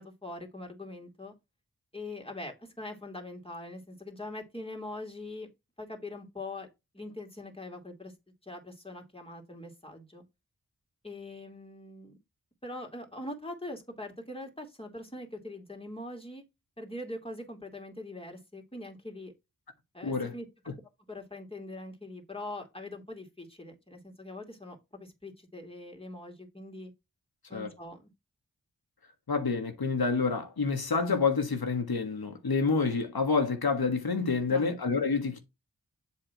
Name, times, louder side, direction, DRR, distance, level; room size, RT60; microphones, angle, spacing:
voice 1, 0.0-1.3 1.9-5.5 5.8-6.7 6.9-8.1 8.4-10.2 11.0-12.2 12.6-16.4 16.8-19.3 19.9-20.5 21.1-26.9 27.5-28.1 34.5-34.7, left 2 dB, 15° left, 2.4 m, -42 dB
voice 2, 20.0-20.3 27.5-27.7 29.3-35.4, left 4 dB, 85° left, 1.6 m, -28 dB
7.7 x 3.5 x 4.6 m
wide cardioid pair, 55°, 36 cm